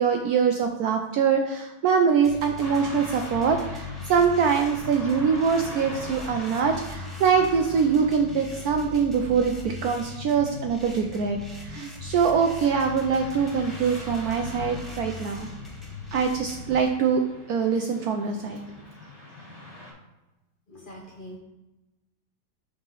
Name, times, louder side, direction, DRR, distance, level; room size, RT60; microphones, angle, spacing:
voice 1, 0.0-15.5 16.1-17.2 17.5-18.6, right 6 dB, 80° right, 4 dB, 0.8 m, -23 dB
sound 1, 2.2-16.8, left 4 dB, ahead, 0.4 m, -39 dB
Car passing by / Traffic noise roadway noise, 2.6-19.9, left 1 dB, 20° left, 1.4 m, -44 dB
voice 2, 20.7-21.4, equal, 80° left, -2 dB, 0.4 m, -43 dB
5.4 x 3.7 x 5.5 m, 1.1 s
omnidirectional pair, 2.1 m